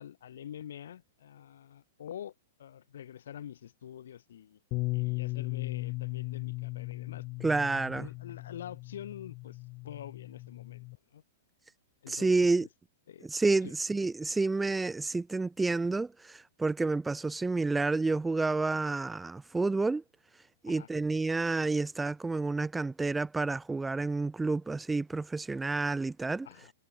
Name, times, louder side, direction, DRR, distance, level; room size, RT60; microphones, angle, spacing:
voice 1, 0.0-2.3 2.6-4.6 4.9-9.6 9.8-10.9 11.1-11.2 12.0-12.3 12.6-12.7 13.1-13.3 13.6-13.7 20.6-20.9 26.4-26.7, left 10 dB, 70° left, 1.3 m, -46 dB
Bass guitar, 4.7-11.0, left 25 dB, 40° left, 0.9 m, -37 dB
voice 2, 7.4-8.1 12.1-12.7 13.2-20.0 20.6-26.5, right 3 dB, 10° right, 0.3 m, -29 dB
hypercardioid pair, 115°, 0 cm